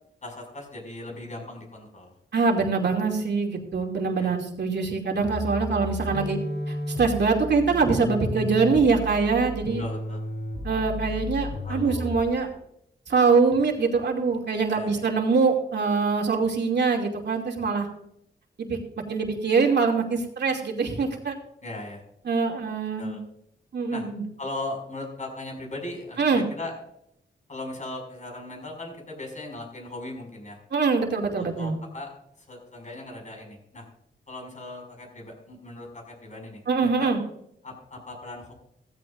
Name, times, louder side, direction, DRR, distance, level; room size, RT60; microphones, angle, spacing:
voice 1, 0.2-2.1 4.2-4.4 9.8-10.2 11.6-12.1 14.7-15.0 21.6-22.0 23.0-23.2 23.9-24.0 24.4-26.7 27.5-30.6 31.3-33.9 34.3-37.1 37.6-38.5, left 2 dB, 40° left, 1 dB, 6.0 m, -38 dB
voice 2, 2.3-6.4 6.7-9.8 10.6-12.5 13.1-17.9 18.6-18.8 19.1-21.4 22.3-23.2 23.7-24.2 26.2-26.4 30.7-31.7 36.7-37.2, right 4 dB, 70° right, 1 dB, 2.6 m, -24 dB
sound 1, 5.2-12.4, left 1 dB, 80° left, 5.6 m, -33 dB
16.0 x 15.5 x 2.5 m, 0.75 s
wide cardioid pair, 95°, 18 cm